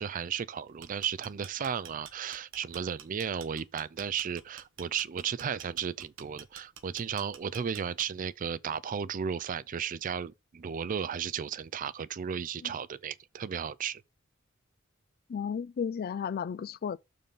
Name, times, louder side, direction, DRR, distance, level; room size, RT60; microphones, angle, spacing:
voice 1, 0.0-14.0, right 7 dB, 40° right, 0.4 m, -34 dB
sound 1, 0.7-8.3, right 8 dB, 65° right, 1.0 m, -49 dB
voice 2, 15.3-17.0, left 7 dB, 50° left, 0.3 m, -33 dB
6.9 x 3.8 x 5.4 m
head